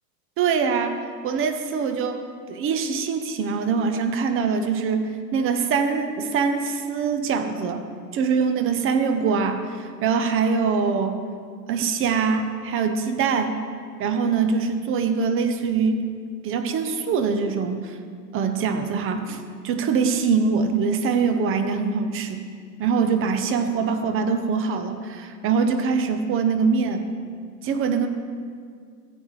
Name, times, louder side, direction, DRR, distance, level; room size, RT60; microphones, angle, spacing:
voice 1, 0.4-2.2 2.5-7.8 8.1-11.2 11.7-13.6 14.0-16.0 16.4-18.0 18.3-22.5 22.8-27.1 27.6-28.1, right 5 dB, 25° right, 8 dB, 0.7 m, -23 dB
14.0 x 8.6 x 3.2 m, 2.1 s
hypercardioid pair, 105°, 50 cm